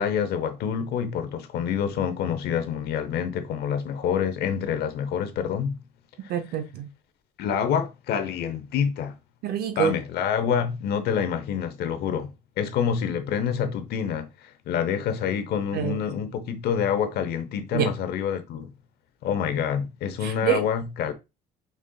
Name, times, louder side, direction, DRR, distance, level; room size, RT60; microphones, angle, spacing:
voice 1, 0.0-5.8 7.4-9.1 9.8-12.3 12.6-18.7 19.2-21.1, left 8 dB, 70° left, 0.8 m, -27 dB
voice 2, 6.3-6.9 9.4-9.9 15.7-16.0 17.7-17.9 20.2-20.6, right 9 dB, 65° right, 0.6 m, -26 dB
5.3 x 3.6 x 2.3 m
cardioid pair, 110°, 17 cm